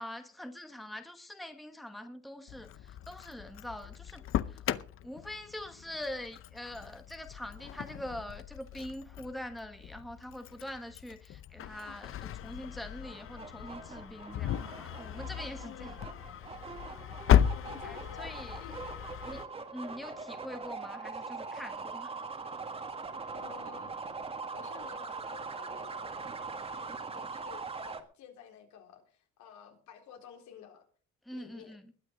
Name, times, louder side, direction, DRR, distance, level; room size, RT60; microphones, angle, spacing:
voice 1, 0.0-4.2 4.5-4.7 5.0-16.0 17.8-18.6 19.2-19.4 19.7-22.1 31.2-31.9, left 1 dB, ahead, 1.2 m, -44 dB
Engine starting, 2.5-19.4, left 10 dB, 45° left, 0.7 m, -35 dB
sound 1, 13.0-28.0, right 4 dB, 20° right, 1.8 m, -42 dB
voice 2, 15.6-16.1 17.5-18.3 18.6-18.9 20.1-20.2 23.3-24.1 24.5-30.9 31.3-31.8, left 8 dB, 75° left, 3.9 m, -52 dB
21.0 x 9.5 x 5.2 m
cardioid pair, 175°, 30 cm